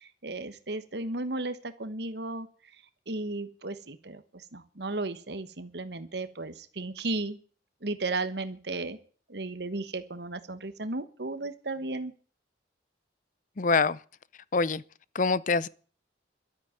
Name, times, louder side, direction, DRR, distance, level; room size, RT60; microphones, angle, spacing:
voice 1, 0.0-2.5 3.1-7.4 7.8-9.0 9.3-12.1, right 2 dB, 60° right, 1.3 m, -34 dB
voice 2, 13.6-14.0 14.5-14.8 15.1-15.7, left 4 dB, 45° left, 0.6 m, -25 dB
12.5 x 8.9 x 9.5 m
head